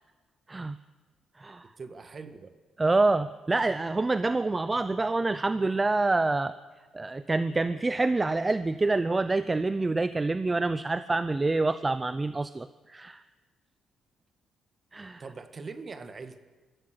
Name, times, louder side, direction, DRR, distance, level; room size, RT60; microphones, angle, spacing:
voice 1, 1.8-2.5 15.2-16.4, right 4 dB, 35° right, 9 dB, 1.7 m, -42 dB
voice 2, 2.8-6.5 6.9-13.2 14.9-15.2, right 3 dB, 20° right, 14 dB, 0.6 m, -27 dB
23.5 x 14.5 x 8.0 m, 1.3 s
cardioid pair, 90°, 0 cm